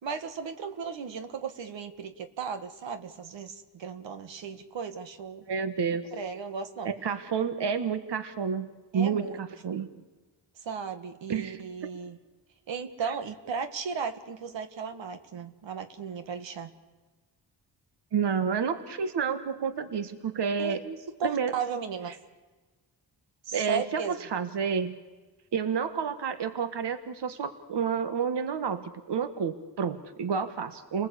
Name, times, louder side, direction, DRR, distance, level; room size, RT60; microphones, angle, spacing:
voice 1, 0.0-5.4 6.1-6.9 8.9-9.4 9.7-9.9 10.6-12.2 12.7-16.7 20.6-22.2 23.4-24.2, right 6 dB, 90° right, 8 dB, 1.7 m, -35 dB
voice 2, 5.5-6.0 6.8-8.7 8.9-9.9 11.3-11.6 18.1-20.8 21.2-21.5 23.5-24.9 25.5-31.1, right 6 dB, 70° right, 10 dB, 1.6 m, -30 dB
29.5 x 20.0 x 8.4 m, 1.3 s
cardioid pair, 85°, 44 cm